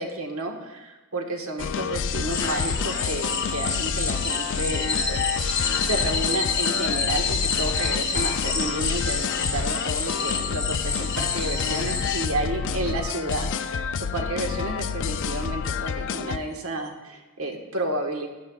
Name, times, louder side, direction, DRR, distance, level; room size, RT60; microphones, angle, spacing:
voice 1, 0.0-18.3, right 1 dB, 70° right, 3 dB, 1.4 m, -31 dB
sound 1, 1.6-16.4, left 6 dB, 55° left, 0.4 m, -29 dB
sound 2, 2.3-12.3, left 4 dB, 20° left, 1.1 m, -28 dB
15.0 x 11.5 x 2.3 m, 1.2 s
head